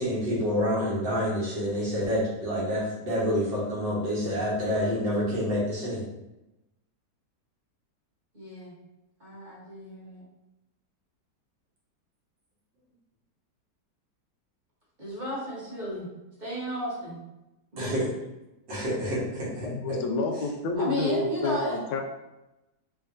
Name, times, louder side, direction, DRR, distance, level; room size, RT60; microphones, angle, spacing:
voice 1, 0.0-6.0 17.8-18.1 18.7-20.0, equal, 80° right, -7 dB, 2.0 m, -28 dB
voice 2, 8.3-8.8 9.2-10.2 15.0-16.1 16.4-17.2 17.7-18.0 20.8-21.8, equal, 30° right, -7 dB, 1.1 m, -33 dB
voice 3, 19.6-21.6 21.9-22.0, left 3 dB, 80° left, 3 dB, 1.2 m, -28 dB
4.9 x 2.6 x 2.6 m, 0.96 s
omnidirectional pair, 1.9 m